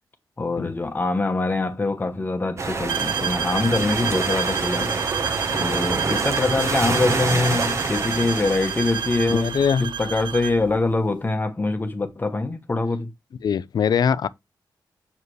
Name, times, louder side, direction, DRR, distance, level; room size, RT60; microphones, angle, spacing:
voice 1, 0.4-4.9 5.6-13.1, left 3 dB, 25° left, 1.0 m, -24 dB
sound 1, 2.6-10.7, right 3 dB, 40° right, 1.0 m, -27 dB
sound 2, 2.9-10.6, right 9 dB, 90° right, 0.4 m, -30 dB
voice 2, 9.3-9.9 13.4-14.3, left 7 dB, 60° left, 0.4 m, -22 dB
6.7 x 4.8 x 3.1 m
wide cardioid pair, 135°, 8 cm